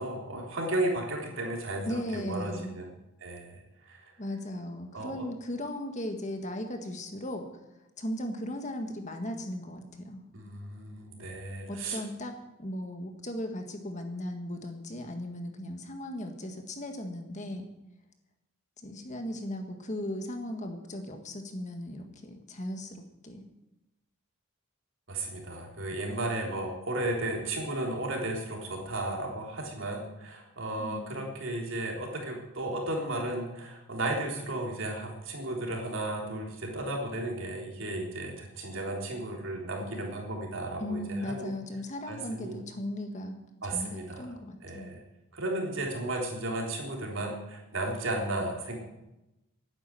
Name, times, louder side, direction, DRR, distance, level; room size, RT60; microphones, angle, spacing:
voice 1, 0.0-2.9 3.2-4.2 4.9-5.3 10.3-12.0 25.1-41.5 42.1-42.6 43.6-44.3 44.6-45.0 45.3-48.8, right 1 dB, 60° right, 0 dB, 3.7 m, -34 dB
voice 2, 1.9-2.8 4.2-7.5 8.0-10.2 11.7-17.7 18.8-23.4 30.8-31.2 40.8-43.4 43.7-44.9, left 1 dB, 35° left, 5 dB, 1.7 m, -37 dB
12.0 x 9.8 x 9.0 m, 0.94 s
head